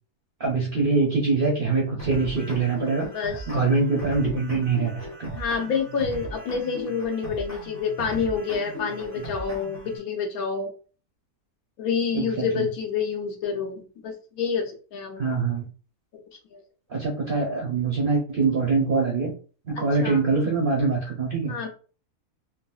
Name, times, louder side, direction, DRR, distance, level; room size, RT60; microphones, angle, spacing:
voice 1, 0.4-3.1 3.5-5.3 12.1-12.7 15.2-15.6 16.9-19.3 19.7-21.6, right 4 dB, 55° right, -1 dB, 0.6 m, -24 dB
sound 1, 2.0-10.0, equal, 20° left, 0.4 m, -38 dB
voice 2, 3.0-3.4 5.3-10.7 11.8-15.2 16.5-16.6 19.8-20.2 21.5-21.7, left 6 dB, 75° left, 3 dB, 1.2 m, -28 dB
3.8 x 2.1 x 2.3 m, 0.37 s
omnidirectional pair, 1.6 m